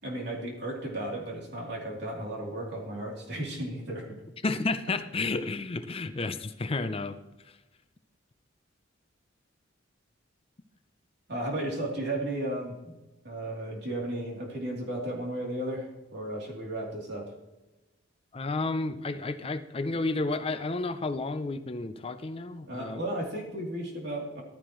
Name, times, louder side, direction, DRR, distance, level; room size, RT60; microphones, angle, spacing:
voice 1, 0.0-4.1 11.3-12.9 13.2-17.3 22.7-24.4, right 1 dB, 60° right, 3.1 m, -34 dB
voice 2, 4.4-7.2 18.3-23.0, left 3 dB, 30° left, 0.5 m, -31 dB
14.5 x 12.0 x 3.1 m
head